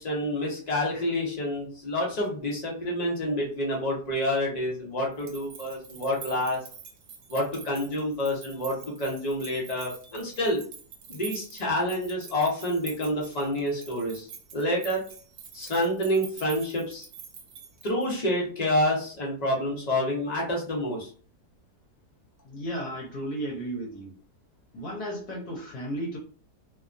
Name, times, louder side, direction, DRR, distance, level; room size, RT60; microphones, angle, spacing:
voice 1, 0.0-6.6 7.3-10.6 11.1-14.3 14.5-15.0 15.5-17.1 17.8-21.1, left 1 dB, 40° left, -2 dB, 0.6 m, -28 dB
sound 1, 5.1-18.2, right 7 dB, 65° right, 1.0 m, -46 dB
voice 2, 22.4-24.1 24.7-26.2, right 1 dB, 70° left, -2 dB, 1.2 m, -34 dB
2.7 x 2.3 x 2.5 m, 0.42 s
omnidirectional pair, 1.7 m